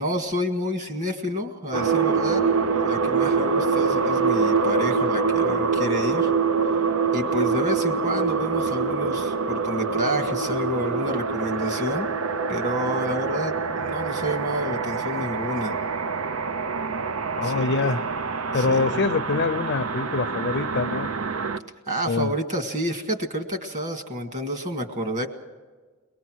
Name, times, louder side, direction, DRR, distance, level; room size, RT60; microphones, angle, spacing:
voice 1, 0.0-2.5 2.8-6.3 7.1-12.1 12.5-15.8 17.4-18.0 18.5-19.0 21.9-25.3, equal, 35° right, 5 dB, 1.9 m, -29 dB
sound 1, 1.7-21.6, right 5 dB, 80° right, 0.7 m, -25 dB
voice 2, 17.4-18.0 18.5-21.1 22.1-22.3, left 4 dB, 55° left, 12 dB, 0.6 m, -25 dB
22.0 x 20.0 x 6.3 m, 1.4 s
head